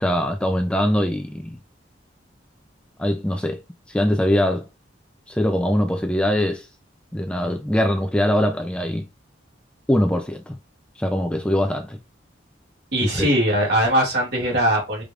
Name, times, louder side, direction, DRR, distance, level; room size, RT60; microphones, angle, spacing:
voice 1, 0.0-1.6 3.0-3.6 3.9-4.7 5.3-6.7 7.1-9.1 9.9-10.6 11.0-12.0 13.2-13.3, left 1 dB, 5° left, 0.4 m, -22 dB
voice 2, 12.9-15.0, equal, 55° right, 2.2 m, -20 dB
4.9 x 3.2 x 2.5 m
head